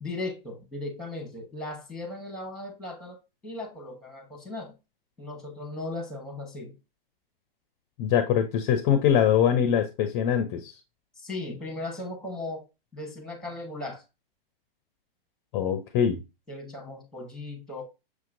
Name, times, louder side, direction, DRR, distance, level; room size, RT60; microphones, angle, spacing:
voice 1, 0.0-4.7 5.2-6.8 11.2-12.7 12.9-14.0 16.5-17.8, left 2 dB, ahead, 1.1 m, -37 dB
voice 2, 8.0-10.7 15.5-16.2, left 9 dB, 30° left, 0.5 m, -23 dB
6.2 x 2.8 x 2.5 m
hypercardioid pair, 130°, 29 cm